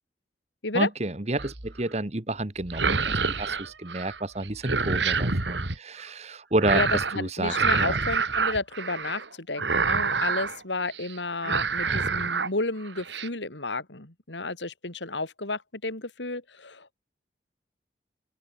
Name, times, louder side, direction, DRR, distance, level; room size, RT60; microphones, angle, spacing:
voice 1, 0.7-7.9, right 2 dB, 35° right, 1.4 m, -30 dB
sound 1, 1.4-1.8 2.6-4.2 4.4-5.8 6.6-7.2 7.5-9.3 9.6-10.6 10.9-11.1 11.4-12.5 12.9-13.3, right 4 dB, 80° right, 2.5 m, -27 dB
voice 2, 6.7-17.0, left 3 dB, 85° left, 3.5 m, -32 dB
open air
head